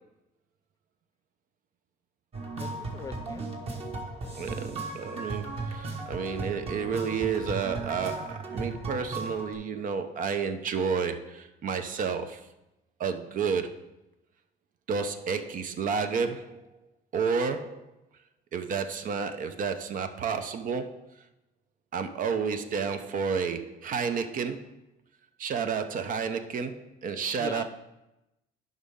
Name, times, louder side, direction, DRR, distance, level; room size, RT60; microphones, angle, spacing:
sound 1, 2.3-9.5, right 3 dB, 35° right, 1.5 m, -36 dB
voice 1, 2.6-3.5 27.4-27.6, left 4 dB, 20° left, 9 dB, 0.6 m, -40 dB
voice 2, 4.4-12.5 13.0-13.8 14.9-16.7 17.1-17.8 18.5-21.1 21.9-24.7 25.4-27.6, right 6 dB, 55° right, 9 dB, 0.7 m, -31 dB
11.0 x 5.4 x 3.6 m, 0.93 s
cardioid pair, 110°, 17 cm